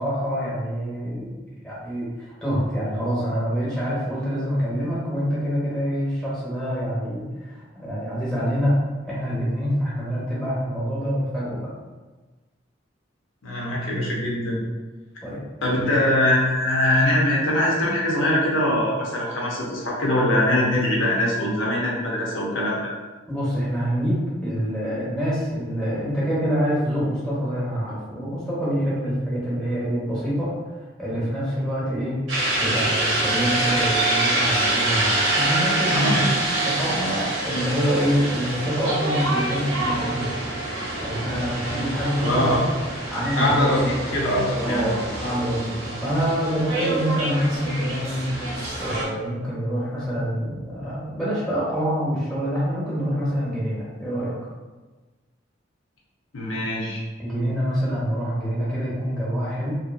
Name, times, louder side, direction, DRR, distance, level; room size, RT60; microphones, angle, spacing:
voice 1, 0.0-1.3 1.6-8.7 9.0-11.7 15.2-15.4 23.3-30.5 31.0-32.2 32.6-40.4 41.0-42.6 43.1-43.9 44.6-54.3 57.2-59.8, equal, 5° left, -9 dB, 0.8 m, -26 dB
voice 2, 13.4-14.6 15.6-22.9 35.9-36.2 42.1-42.6 43.4-44.9 56.3-57.0, left 1 dB, 85° left, -4 dB, 0.7 m, -22 dB
sound 1, 32.3-49.0, right 2 dB, 85° right, 0.8 m, -26 dB
2.7 x 2.6 x 2.5 m, 1.3 s
head